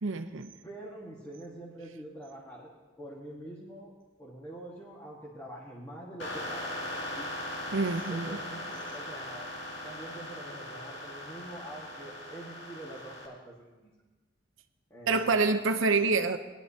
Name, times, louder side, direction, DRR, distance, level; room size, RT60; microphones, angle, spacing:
voice 1, 0.0-0.5 7.7-8.4 15.1-16.4, right 3 dB, 85° right, 8 dB, 0.7 m, -27 dB
voice 2, 0.6-3.9 4.2-7.5 8.1-9.5 9.8-13.9 14.9-15.4, right 1 dB, 15° left, -5 dB, 1.5 m, -45 dB
sound 1, 6.2-13.3, left 1 dB, 65° left, 2.1 m, -39 dB
20.0 x 11.5 x 2.8 m, 1.2 s
head